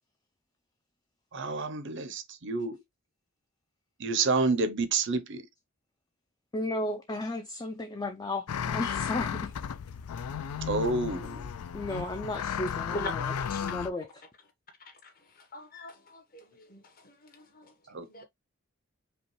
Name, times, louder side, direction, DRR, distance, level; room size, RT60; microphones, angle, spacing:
voice 1, 1.3-2.8 4.0-5.5 10.6-11.5 17.9-18.2, right 3 dB, 55° right, 0.6 m, -29 dB
voice 2, 6.5-9.5 11.7-13.1 13.6-14.1, left 1 dB, 15° left, 0.3 m, -34 dB
sound 1, 8.5-13.9, left 8 dB, 85° left, 0.4 m, -34 dB
voice 3, 12.6-13.9 14.8-18.2, left 2 dB, 40° left, 1.0 m, -43 dB
5.2 x 2.2 x 3.0 m
head